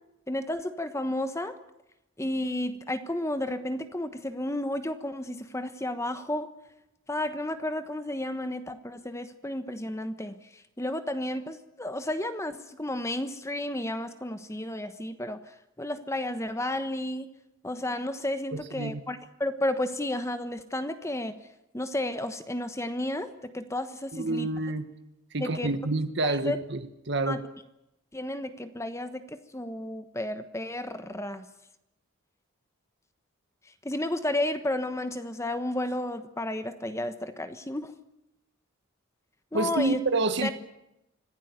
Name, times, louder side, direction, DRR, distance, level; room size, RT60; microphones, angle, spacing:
voice 1, 0.3-1.6 2.2-6.5 7.1-17.3 17.6-21.3 21.7-24.5 25.4-25.8 26.2-26.6 27.3-27.4 28.1-31.5 33.8-37.9 39.5-40.0 40.4-40.5, left 1 dB, 15° left, 1.2 m, -32 dB
voice 2, 18.5-19.0 24.1-24.9 25.3-26.8 27.1-27.4 39.5-40.5, right 2 dB, 55° right, 1.4 m, -28 dB
26.0 x 16.0 x 9.5 m
head